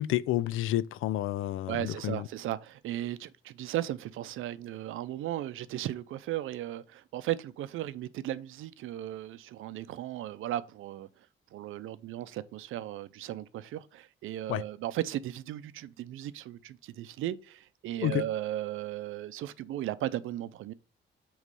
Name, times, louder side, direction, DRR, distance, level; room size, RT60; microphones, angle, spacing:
voice 1, 0.0-2.3 14.5-14.6 18.0-18.3, left 14 dB, 85° left, 0.4 m, -30 dB
voice 2, 1.7-11.1 11.5-20.7, right 13 dB, 85° right, 0.5 m, -36 dB
8.1 x 3.2 x 5.3 m
cardioid pair, 130°, 20 cm